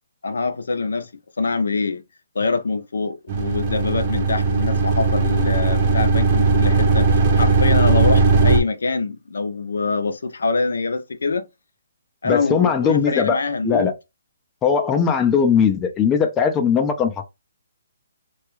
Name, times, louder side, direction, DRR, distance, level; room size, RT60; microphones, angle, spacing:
voice 1, 0.2-1.1 1.4-2.0 2.3-11.4 12.2-13.9, left 4 dB, 80° left, 0.5 m, -24 dB
sound 1, 3.3-8.6, right 3 dB, 35° right, 0.5 m, -18 dB
voice 2, 12.2-13.4 13.6-13.9 14.6-17.3, left 6 dB, 15° left, 0.4 m, -19 dB
2.2 x 2.1 x 3.0 m
hypercardioid pair, 160°, 0 cm